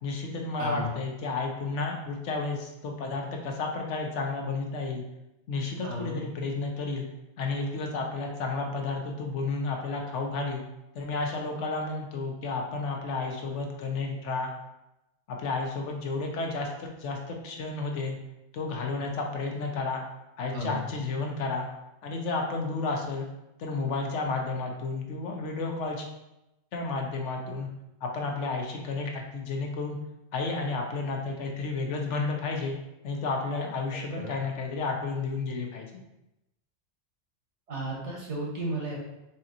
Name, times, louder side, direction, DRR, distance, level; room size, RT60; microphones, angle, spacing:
voice 1, 0.0-5.0 5.5-7.1 7.4-10.6 10.9-14.5 15.3-18.2 18.5-20.0 20.4-21.7 22.0-23.3 23.6-26.1 26.7-27.7 28.0-30.0 30.3-32.8 33.0-36.0, left 3 dB, 85° left, 1 dB, 1.1 m, -32 dB
voice 2, 0.6-0.9 5.8-6.2 20.5-20.8 34.2-34.3 37.7-39.0, right 1 dB, 80° right, -3 dB, 1.6 m, -33 dB
4.2 x 2.9 x 3.8 m, 0.93 s
omnidirectional pair, 1.2 m